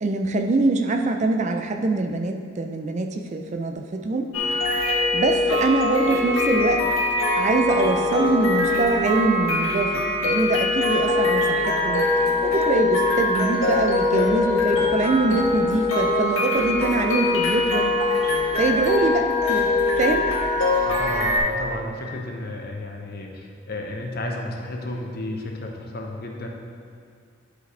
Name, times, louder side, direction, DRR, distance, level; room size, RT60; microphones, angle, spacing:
voice 1, 0.0-4.3 5.1-6.8 7.4-12.0 12.4-17.9 18.6-20.3, right 3 dB, 35° right, 4 dB, 0.4 m, -24 dB
sound 1, 4.3-21.4, left 2 dB, 85° left, 1.4 m, -22 dB
voice 2, 20.8-26.5, left 1 dB, 50° left, 1 dB, 0.9 m, -32 dB
11.5 x 5.0 x 3.3 m, 2.2 s
head